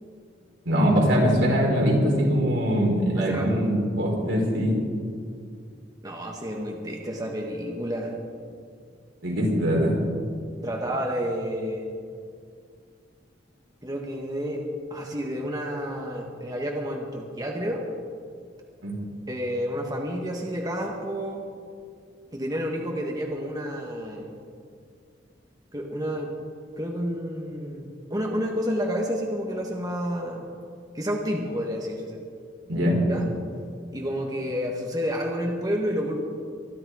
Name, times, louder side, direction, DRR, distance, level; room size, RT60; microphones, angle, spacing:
voice 1, 0.6-4.8 9.2-9.9 18.8-18.9 32.7-33.0, equal, 80° right, -2 dB, 4.8 m, -22 dB
voice 2, 3.2-3.6 6.0-8.1 10.6-11.9 13.8-14.6 14.9-17.8 19.3-21.5 22.3-24.3 25.7-26.3 26.8-30.5 30.9-32.2 33.1-33.3 33.9-36.2, equal, 20° right, 0 dB, 1.4 m, -30 dB
23.5 x 12.0 x 4.8 m, 2.2 s
head